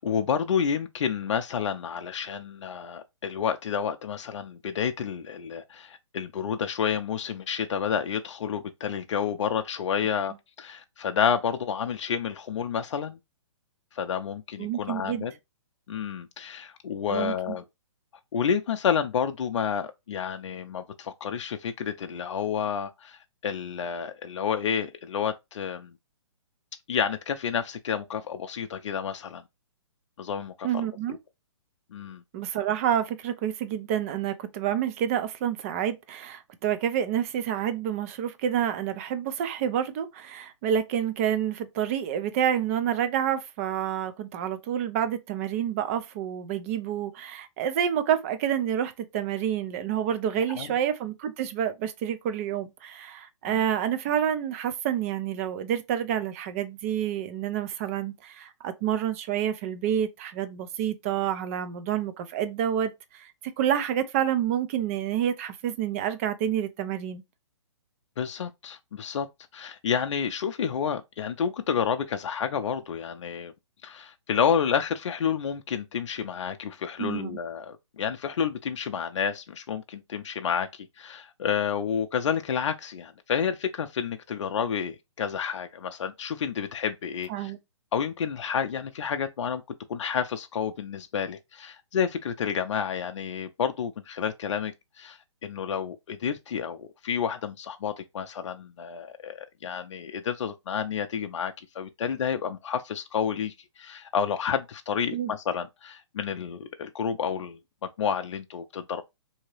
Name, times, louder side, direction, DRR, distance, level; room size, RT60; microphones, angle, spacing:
voice 1, 0.0-13.2 13.9-15.3 15.9-17.6 18.3-25.9 26.9-29.4 30.2-30.9 31.9-32.2 50.5-50.7 53.4-53.6 68.2-69.3 69.5-73.5 73.8-87.5 87.9-89.6 89.9-107.6 108.0-109.0, left 7 dB, 70° left, 0.4 m, -30 dB
voice 2, 14.6-15.3 17.1-17.6 30.6-31.2 32.3-67.2 77.0-77.4 87.3-87.6 105.1-105.3, right 9 dB, 25° right, 0.4 m, -28 dB
2.8 x 2.7 x 3.1 m
hypercardioid pair, 145°, 16 cm